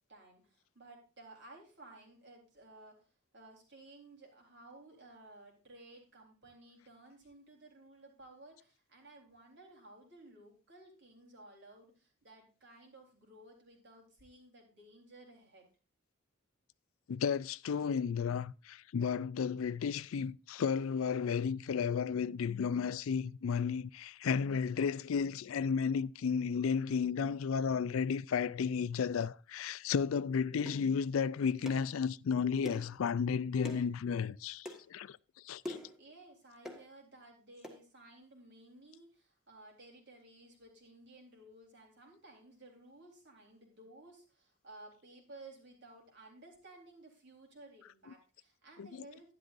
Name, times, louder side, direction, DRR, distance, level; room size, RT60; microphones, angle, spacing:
voice 1, 0.0-3.1 3.3-15.7 35.7-49.3, right 2 dB, 55° right, 3.7 m, -56 dB
voice 2, 17.1-35.2 35.5-35.8 48.8-48.9, left 6 dB, 75° left, 0.4 m, -33 dB
sound 1, 30.7-30.8 31.7-31.9 32.7-33.0 33.6-33.9 34.7-34.8 35.7-36.0 36.7-36.8 37.6-37.8, left 1 dB, 5° right, 1.5 m, -43 dB
11.5 x 11.0 x 2.6 m
head